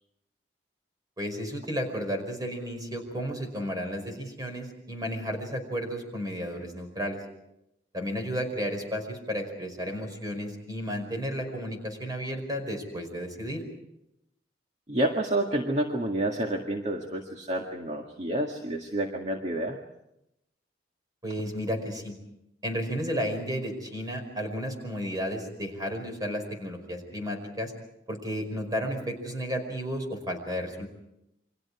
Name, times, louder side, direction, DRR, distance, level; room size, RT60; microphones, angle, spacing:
voice 1, 1.2-7.2 7.9-13.6 21.2-22.2 22.6-27.7 28.1-30.9, equal, 20° right, 4 dB, 5.1 m, -33 dB
voice 2, 14.9-19.8, right 1 dB, 40° right, 2 dB, 1.9 m, -29 dB
29.0 x 24.5 x 4.8 m, 0.83 s
head